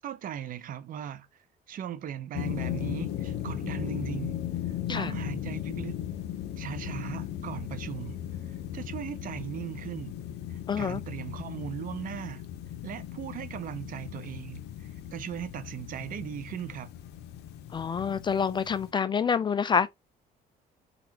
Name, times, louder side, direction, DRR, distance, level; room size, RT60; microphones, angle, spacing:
voice 1, 0.0-1.3 1.7-4.4 4.9-5.9 6.6-8.2 8.7-10.1 10.8-12.4 12.8-14.6 15.1-16.9, right 9 dB, 55° right, 0.7 m, -38 dB
sound 1, 2.3-18.9, left 11 dB, 80° left, 0.7 m, -37 dB
voice 2, 10.7-11.0 17.7-19.9, left 6 dB, 25° left, 0.3 m, -27 dB
4.2 x 4.1 x 2.8 m
cardioid pair, 110°, 17 cm